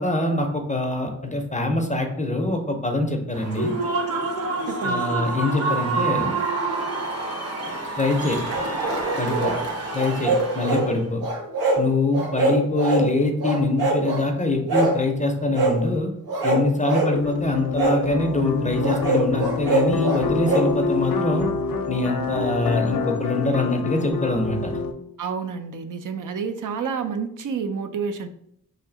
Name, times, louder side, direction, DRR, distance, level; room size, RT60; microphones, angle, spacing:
voice 1, 0.0-3.7 4.8-6.3 8.0-8.4 9.2-9.5 9.9-11.2 11.8-16.1 16.4-21.5 21.9-24.8, left 2 dB, 20° left, 3 dB, 0.5 m, -24 dB
Human voice / Cheering / Applause, 3.3-11.0, right 3 dB, 45° right, 0.9 m, -27 dB
voice 2, 4.7-5.1 25.2-28.3, right 6 dB, 60° right, 9 dB, 0.5 m, -29 dB
sound 1, 8.5-9.6 9.9-10.9 11.2-11.8 12.1-13.1 13.4-14.2 14.7-15.0 15.5-15.8 16.3-17.1 17.8-18.0 18.8-20.7, right 2 dB, 85° right, 1.3 m, -23 dB
sound 2, 17.1-24.9, left 5 dB, 75° left, 0.5 m, -27 dB
3.2 x 2.7 x 3.8 m, 0.73 s
wide cardioid pair, 95°, 35 cm